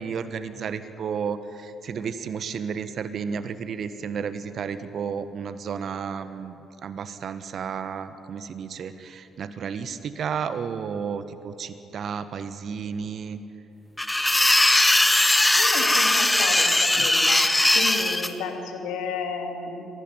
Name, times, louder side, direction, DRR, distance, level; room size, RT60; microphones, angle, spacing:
voice 1, 0.0-6.6 6.8-13.4 17.0-17.1, right 6 dB, 55° right, 12 dB, 1.4 m, -32 dB
sound 1, 14.0-18.3, left 1 dB, 10° left, 1.6 m, -19 dB
voice 2, 15.6-17.5 17.7-19.9, left 5 dB, 70° left, 3 dB, 2.7 m, -32 dB
25.0 x 19.0 x 9.9 m, 2.8 s
figure-of-eight pair, 45°, 0 cm